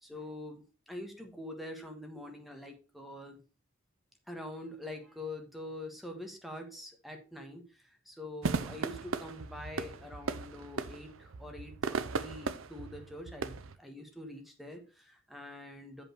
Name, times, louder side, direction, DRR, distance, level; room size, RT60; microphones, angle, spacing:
voice 1, 0.0-3.4 4.3-16.0, left 1 dB, ahead, 3 dB, 1.4 m, -45 dB
sound 1, 8.4-13.8, right 4 dB, 75° right, 0.6 m, -37 dB
7.3 x 5.4 x 4.4 m, 0.34 s
head